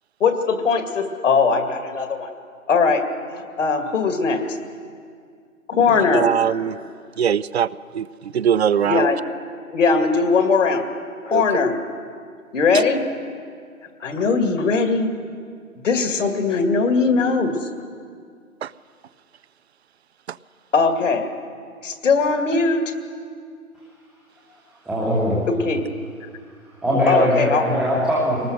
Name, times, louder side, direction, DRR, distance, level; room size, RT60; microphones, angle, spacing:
voice 1, 0.2-2.3 2.7-3.1 3.3-4.6 5.7-6.3 8.8-9.2 9.7-10.9 11.2-11.8 12.5-13.0 14.0-15.1 15.8-17.6 20.7-21.3 21.8-22.8 25.5-25.8 27.1-27.8, left 4 dB, 60° left, 6 dB, 2.3 m, -20 dB
voice 2, 6.1-6.8 7.2-7.7 7.9-8.1 8.3-9.1 11.3-11.4 18.6-18.7, right 8 dB, 50° right, 19 dB, 0.5 m, -20 dB
voice 3, 24.8-25.4 26.8-28.5, equal, ahead, -19 dB, 0.5 m, -20 dB
22.5 x 19.5 x 6.4 m, 2.2 s
figure-of-eight pair, 145°, 42 cm